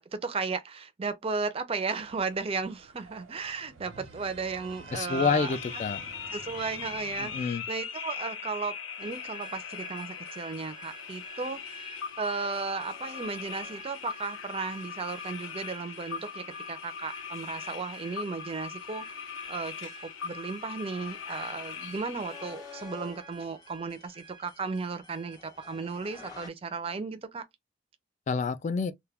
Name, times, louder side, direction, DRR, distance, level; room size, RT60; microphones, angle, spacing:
voice 1, 0.0-5.6 6.3-19.0 19.5-19.9 20.2-27.4, right 4 dB, 30° right, 0.4 m, -35 dB
sound 1, 2.0-7.5, right 3 dB, 90° right, 0.8 m, -50 dB
sound 2, 4.9-22.8, left 7 dB, 80° left, 0.6 m, -40 dB
voice 2, 4.9-6.0 7.2-7.6 28.3-28.9, left 5 dB, 35° left, 0.3 m, -28 dB
sound 3, 9.0-26.5, equal, 20° left, 0.8 m, -50 dB
2.2 x 2.2 x 3.3 m
head